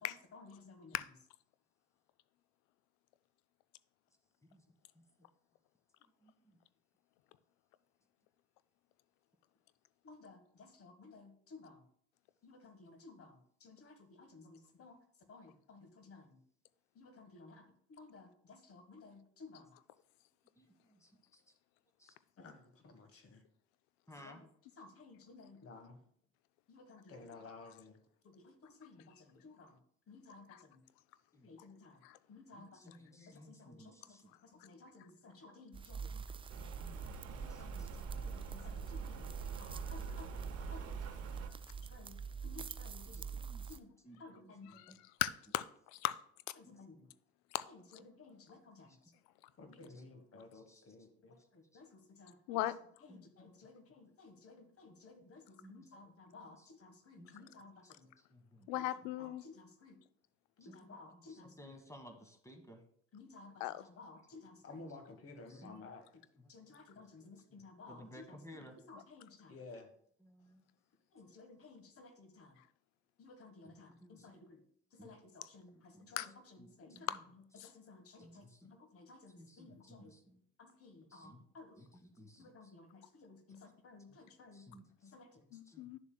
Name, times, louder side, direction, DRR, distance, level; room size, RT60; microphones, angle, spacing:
voice 1, 0.0-0.9 10.0-11.8 12.4-15.0 15.3-16.4 16.9-19.7 22.4-23.4 24.2-24.5 24.8-26.0 26.7-28.0 28.2-29.8 30.1-30.8 31.4-32.0 32.3-32.8 33.1-34.2 34.4-36.1 37.4-39.3 39.6-40.4 40.7-40.9 41.8-43.4 43.7-43.9 44.2-44.8 46.6-47.1 47.7-49.0 49.6-52.6 53.1-58.1 58.7-58.8 59.2-60.0 60.6-61.7 63.1-66.0 66.5-69.9 71.1-72.6 73.2-74.6 74.9-77.1 77.6-80.1 80.6-81.8 82.4-84.7 85.0-85.5, left 3 dB, 45° left, 7 dB, 1.5 m, -56 dB
voice 2, 6.2-6.6 20.6-21.4 22.0-22.1 24.1-24.4 31.3-31.5 32.5-34.3 35.9-36.3 36.5-38.3 43.0-45.0 46.6-46.8 48.9-49.1 49.9-50.0 50.5-50.9 51.7-51.8 53.1-53.3 55.6-56.1 56.4-56.7 57.2-57.5 57.8-58.7 60.6-62.8 65.5-65.8 66.3-68.8 70.2-70.6 73.6-74.4 75.0-75.1 75.7-76.1 76.6-77.2 78.2-78.7 79.4-80.4 81.1-81.4 81.8-82.7 84.1-84.2 84.5-85.1 85.5-85.9, equal, 10° left, 5 dB, 1.5 m, -59 dB
sound 1, 35.7-43.8, right 6 dB, 15° right, 0.3 m, -45 dB
Rain, 36.5-41.5, right 5 dB, 45° right, 0.9 m, -47 dB
voice 3, 45.2-45.6 45.9-46.1 47.5-47.6 52.5-52.7 58.7-59.4 63.6-63.8 76.2-76.3 77.1-77.2 77.6-77.7 85.5-86.0, left 15 dB, 70° left, 16 dB, 0.5 m, -37 dB
10.5 x 7.0 x 2.3 m, 0.64 s
hypercardioid pair, 65°, 33 cm